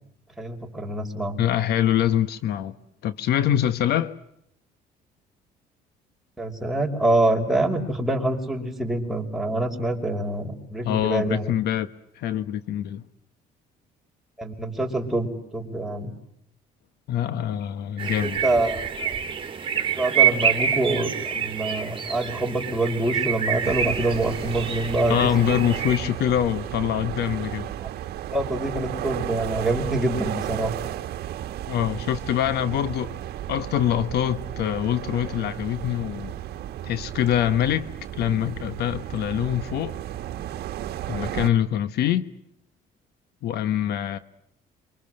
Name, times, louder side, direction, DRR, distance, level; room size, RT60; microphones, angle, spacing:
voice 1, 0.4-1.4 6.4-11.5 14.4-16.1 18.2-19.1 20.0-25.6 28.3-30.7, right 1 dB, ahead, 5.4 m, -26 dB
voice 2, 1.4-2.7 3.0-4.2 10.8-11.9 12.2-13.0 17.1-18.4 25.1-27.7 31.7-33.2 33.5-36.4 36.8-40.0 41.1-42.3 43.4-44.2, left 10 dB, 75° left, 1.3 m, -24 dB
sound 1, 18.0-26.0, right 8 dB, 30° right, 3.5 m, -27 dB
sound 2, 23.6-41.5, right 12 dB, 70° right, 1.4 m, -34 dB
27.5 x 25.0 x 7.8 m
cardioid pair, 110°, 17 cm